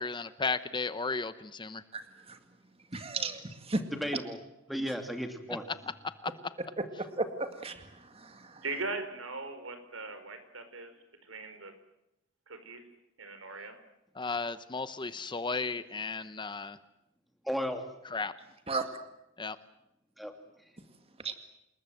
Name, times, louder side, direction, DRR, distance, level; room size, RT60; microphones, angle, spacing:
voice 1, 0.0-1.8 6.2-6.3 14.2-16.8 18.1-18.3 19.4-19.6, left 4 dB, 25° left, 13 dB, 0.8 m, -34 dB
voice 2, 2.9-3.8 6.8-7.8 8.2-8.3 18.7-18.9 21.2-21.3, right 3 dB, 30° right, 8 dB, 2.1 m, -33 dB
voice 3, 3.9-4.4 4.7-5.7 17.4-17.8 20.2-20.3, equal, ahead, 5 dB, 2.7 m, -34 dB
voice 4, 8.6-10.9 11.3-11.7 12.5-12.8 13.2-13.7, right 3 dB, 80° right, 9 dB, 4.8 m, -39 dB
28.0 x 20.5 x 7.9 m, 0.87 s
head